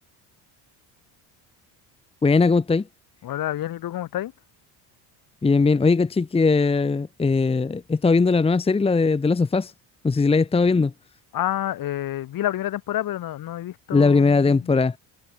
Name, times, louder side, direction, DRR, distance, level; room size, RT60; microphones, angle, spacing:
voice 1, 2.2-2.8 5.4-9.7 10.0-10.9 13.9-15.0, left 4 dB, 15° left, 1.2 m, -19 dB
voice 2, 3.2-4.3 11.3-14.7, left 13 dB, 55° left, 6.4 m, -29 dB
cardioid pair, 130°, 41 cm